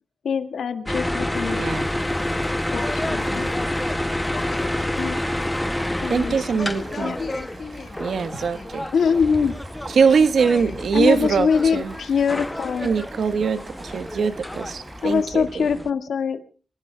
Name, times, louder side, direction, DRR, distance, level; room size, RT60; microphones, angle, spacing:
voice 1, 0.2-1.7 2.7-2.8 3.1-3.5 5.0-5.2 6.0-6.6 7.0-7.2 8.9-9.6 10.9-12.9 15.0-16.5, left 6 dB, 85° left, 6 dB, 1.9 m, -23 dB
sound 1, 0.9-15.9, left 1 dB, 10° left, 0.7 m, -29 dB
sound 2, 1.3-15.3, right 3 dB, 40° right, 7.1 m, -45 dB
voice 2, 1.5-1.9 6.1-7.1 8.0-8.9 9.9-11.5 11.7-11.9 12.8-15.7, right 5 dB, 75° right, 10 dB, 1.3 m, -22 dB
voice 3, 2.7-3.7 4.3-5.6 6.4-8.8 10.5-11.6 12.5-12.6, left 4 dB, 55° left, -3 dB, 5.0 m, -38 dB
28.0 x 18.5 x 2.3 m, 0.41 s
wide cardioid pair, 120°, 0 cm